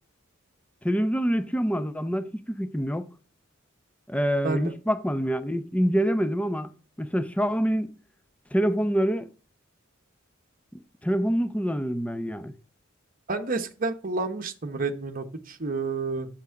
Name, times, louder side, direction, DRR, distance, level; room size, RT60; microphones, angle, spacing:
voice 1, 0.8-3.1 4.1-6.7 7.0-7.9 8.5-9.3 11.0-12.5, equal, 5° left, 0.6 m, -26 dB
voice 2, 13.3-16.3, right 3 dB, 45° right, 0.9 m, -30 dB
8.4 x 6.0 x 5.7 m
head